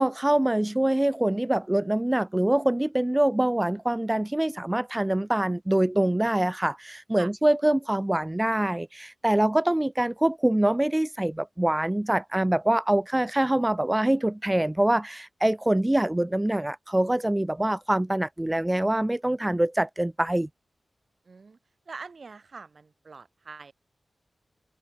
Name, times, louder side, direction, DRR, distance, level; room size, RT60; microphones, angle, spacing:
voice 1, 0.0-20.5, right 1 dB, 15° right, 0.4 m, -24 dB
voice 2, 21.2-21.6 21.9-23.7, right 4 dB, 60° right, 1.3 m, -43 dB
cardioid pair, 65°, 0 cm